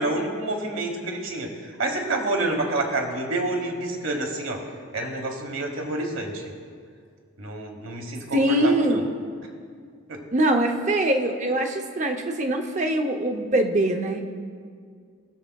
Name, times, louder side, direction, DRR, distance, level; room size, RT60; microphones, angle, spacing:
voice 1, 0.0-4.6 4.9-6.4 7.4-9.0 10.1-10.2, right 2 dB, 60° right, 3 dB, 1.3 m, -28 dB
voice 2, 8.3-9.0 10.3-14.3, right 1 dB, 35° right, 5 dB, 0.7 m, -23 dB
19.5 x 7.0 x 2.3 m, 2.1 s
head